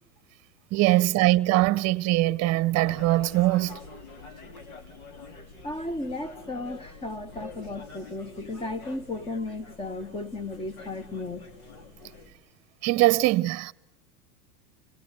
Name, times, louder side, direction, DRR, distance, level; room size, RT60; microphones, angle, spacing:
voice 1, 0.7-3.8 12.8-13.7, right 17 dB, 35° right, 0.9 m, -22 dB
sound 1, 2.7-12.3, left 3 dB, 75° left, 4.0 m, -46 dB
voice 2, 5.6-11.5, left 2 dB, 15° left, 1.0 m, -34 dB
27.5 x 19.0 x 7.9 m
supercardioid pair, 125°, 44 cm